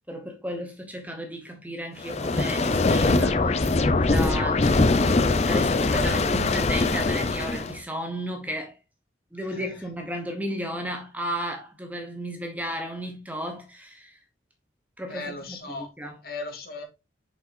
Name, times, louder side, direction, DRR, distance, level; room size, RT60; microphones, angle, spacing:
voice 1, 0.1-3.7 4.0-8.8 9.3-14.2 15.0-16.2, equal, 10° right, 0.9 m, -34 dB
sound 1, 2.0-7.8, left 3 dB, 35° left, 0.5 m, -22 dB
voice 2, 15.1-15.9 16.2-16.8, left 2 dB, 55° left, 1.8 m, -36 dB
6.8 x 5.3 x 2.6 m
head